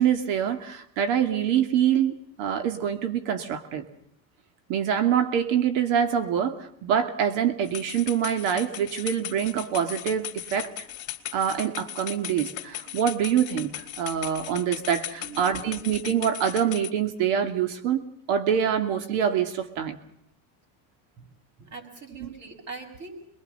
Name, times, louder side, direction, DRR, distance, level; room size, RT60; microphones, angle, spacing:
voice 1, 0.0-3.8 4.7-10.7 11.3-20.0 22.2-22.3, right 8 dB, 75° right, 7 dB, 2.7 m, -25 dB
sound 1, 7.6-16.9, left 12 dB, 45° left, 2.5 m, -38 dB
voice 2, 15.2-15.9 21.2-21.3 21.6-23.3, right 4 dB, 40° right, 1 dB, 7.1 m, -42 dB
28.0 x 22.0 x 5.6 m, 0.69 s
cardioid pair, 125°, 43 cm